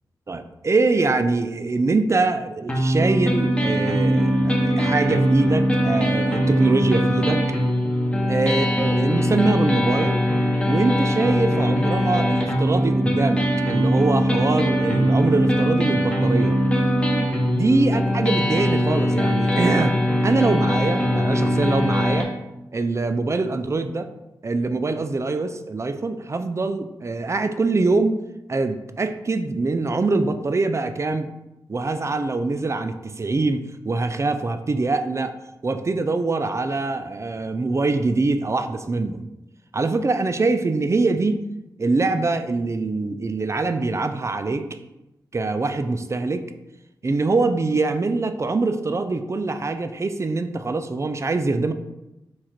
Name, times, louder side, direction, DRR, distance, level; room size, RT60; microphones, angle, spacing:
voice 1, 0.3-7.4 8.3-10.2 10.6-16.6 17.5-19.9 20.2-22.3 22.7-24.1 24.4-28.2 28.5-31.3 31.7-35.4 35.6-39.2 39.7-41.4 41.8-44.8 45.3-46.4 47.0-51.7, right 3 dB, 35° right, 9 dB, 0.4 m, -23 dB
sound 1, 2.7-22.2, equal, 15° left, 1.0 m, -21 dB
4.6 x 2.5 x 4.2 m, 0.94 s
cardioid pair, 50°, 8 cm